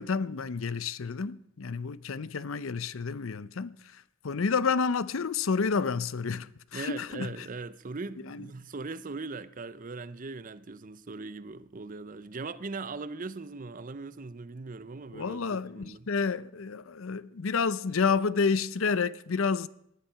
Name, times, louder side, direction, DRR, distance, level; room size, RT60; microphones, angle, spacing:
voice 1, 0.0-7.5 8.2-8.5 15.1-19.7, left 5 dB, 65° left, 0.6 m, -30 dB
voice 2, 6.7-16.1, right 3 dB, 40° right, 0.6 m, -40 dB
18.5 x 11.5 x 5.7 m
head